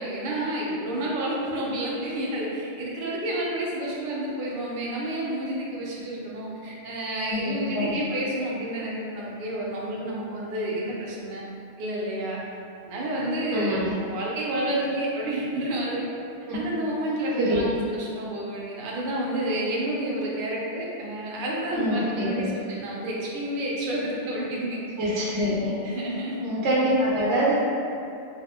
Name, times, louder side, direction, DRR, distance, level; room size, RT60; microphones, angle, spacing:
voice 1, 0.0-11.4 11.8-12.4 12.8-16.1 16.5-25.5 25.8-26.4, right 1 dB, 60° right, -4 dB, 0.6 m, -30 dB
voice 2, 7.2-7.9 13.5-13.9 16.5-16.6 17.4-17.6 21.7-22.5 25.0-25.7 26.4-27.5, equal, 85° right, -7 dB, 0.9 m, -25 dB
2.6 x 2.4 x 2.3 m, 2.6 s
omnidirectional pair, 1.1 m